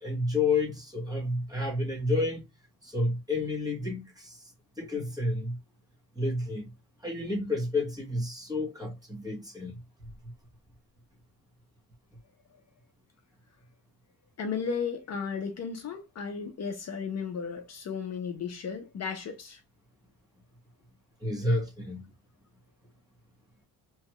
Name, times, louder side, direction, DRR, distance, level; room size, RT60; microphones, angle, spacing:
voice 1, 0.0-2.4 2.8-4.4 4.8-5.6 6.1-6.7 7.0-9.7 21.2-22.1, left 2 dB, 10° right, 0.9 m, -30 dB
voice 2, 14.4-19.6, left 6 dB, 45° left, 0.6 m, -34 dB
3.0 x 2.3 x 2.8 m
cardioid pair, 160°, 38 cm